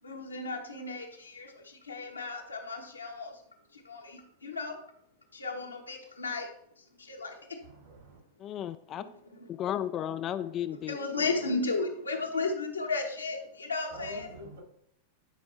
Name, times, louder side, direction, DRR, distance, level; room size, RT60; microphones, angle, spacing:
voice 1, 0.0-3.4 3.7-4.8 5.3-6.5 6.8-7.6 9.0-9.5 10.4-14.3, left 3 dB, 80° left, 1.3 m, -35 dB
voice 2, 7.7-8.2 13.9-14.6, right 2 dB, 60° right, 2.5 m, -46 dB
voice 3, 8.4-9.0 9.5-11.0, left 10 dB, 30° left, 0.3 m, -34 dB
10.5 x 5.2 x 3.4 m
figure-of-eight pair, 90°, 0 cm